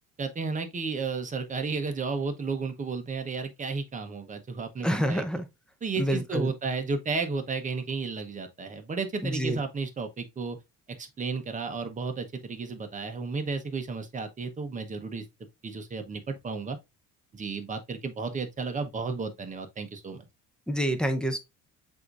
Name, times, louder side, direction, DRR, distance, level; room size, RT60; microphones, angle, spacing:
voice 1, 0.2-5.2 5.8-10.6 11.0-15.2 15.6-16.8 17.3-20.2, right 4 dB, 25° right, 0.8 m, -33 dB
voice 2, 4.8-5.5 6.0-6.5 9.2-9.6 20.7-21.4, equal, 5° left, 0.6 m, -27 dB
7.6 x 2.7 x 2.4 m
cardioid pair, 125°, 30 cm